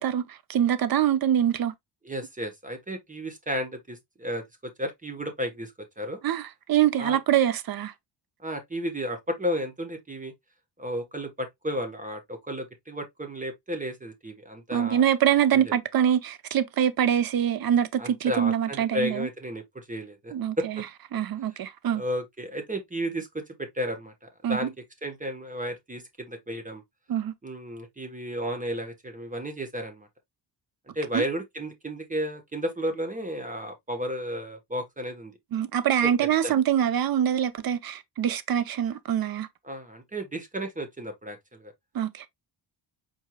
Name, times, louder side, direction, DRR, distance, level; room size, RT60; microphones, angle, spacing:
voice 1, 0.0-1.7 6.2-7.9 14.7-19.3 20.3-20.8 21.1-22.0 24.4-24.7 27.1-27.3 31.1-31.2 35.5-39.5 41.9-42.2, right 10 dB, 55° right, 0.7 m, -24 dB
voice 2, 2.0-6.2 7.0-7.2 8.4-10.3 10.8-15.0 15.5-15.7 18.0-20.8 21.9-24.7 25.0-26.8 27.4-30.1 30.9-35.3 36.4-36.5 39.6-41.7, equal, 20° right, 1.1 m, -33 dB
4.7 x 4.5 x 2.2 m
cardioid pair, 125°, 44 cm